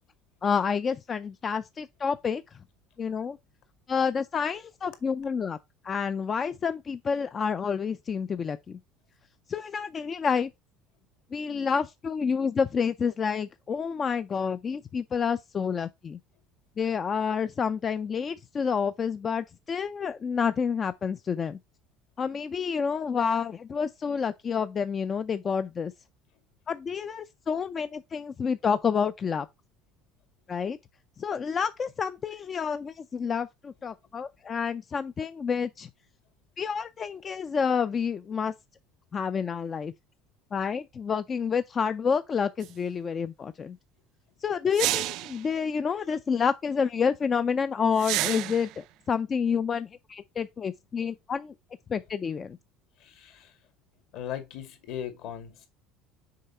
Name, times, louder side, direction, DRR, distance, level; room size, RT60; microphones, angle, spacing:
voice 1, 0.4-2.6 3.0-3.4 3.9-5.6 5.8-8.8 9.5-10.5 11.3-16.2 16.8-21.6 22.2-25.9 26.7-29.5 30.5-30.8 31.2-35.9 36.6-38.5 39.1-39.9 40.5-43.8 44.4-51.5 51.9-52.6, left 6 dB, 25° left, 0.4 m, -29 dB
sound 1, 42.6-42.7 44.7-45.4 48.0-48.7, right 17 dB, 60° right, 0.4 m, -29 dB
voice 2, 53.0-53.5 54.1-55.7, left 10 dB, 60° left, 2.2 m, -38 dB
6.6 x 4.7 x 4.3 m
cardioid pair, 155°, 0 cm